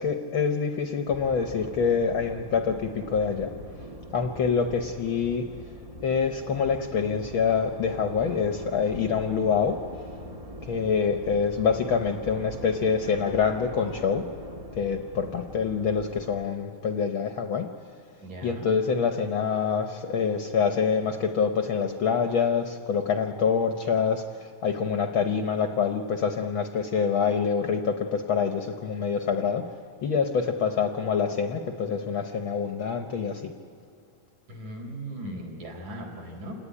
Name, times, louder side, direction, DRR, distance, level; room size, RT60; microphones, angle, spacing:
voice 1, 0.0-3.5 4.1-5.4 6.0-9.8 10.6-14.2 14.7-17.7 18.4-29.6 30.0-33.5, left 6 dB, 65° left, 6 dB, 1.3 m, -26 dB
sound 1, 1.1-16.5, equal, 45° right, 0.4 m, -42 dB
voice 2, 18.2-18.7 34.5-36.6, right 1 dB, 75° right, 1 dB, 5.3 m, -38 dB
27.0 x 18.5 x 9.9 m, 2.6 s
omnidirectional pair, 3.5 m